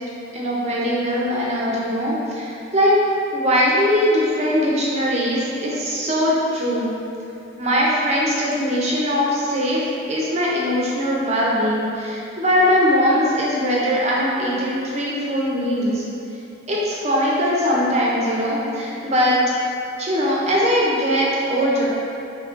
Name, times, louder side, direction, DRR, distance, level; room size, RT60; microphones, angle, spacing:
voice 1, 0.3-2.9 3.3-6.9 7.6-16.0 16.7-19.4 20.0-21.8, equal, 35° right, -5 dB, 0.7 m, -21 dB
3.7 x 2.9 x 4.5 m, 2.7 s
head